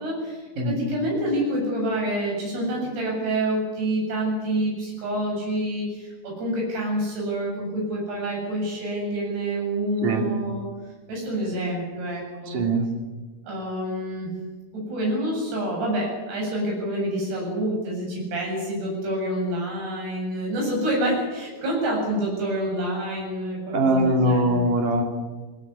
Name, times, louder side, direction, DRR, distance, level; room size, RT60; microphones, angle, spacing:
voice 1, 0.0-10.6 11.1-12.6 13.5-14.3 14.7-24.7, right 1 dB, 80° right, -1 dB, 10.0 m, -27 dB
voice 2, 12.5-12.9 23.7-25.0, right 1 dB, 55° right, 3 dB, 4.8 m, -21 dB
22.0 x 19.0 x 9.8 m, 1.3 s
omnidirectional pair, 4.6 m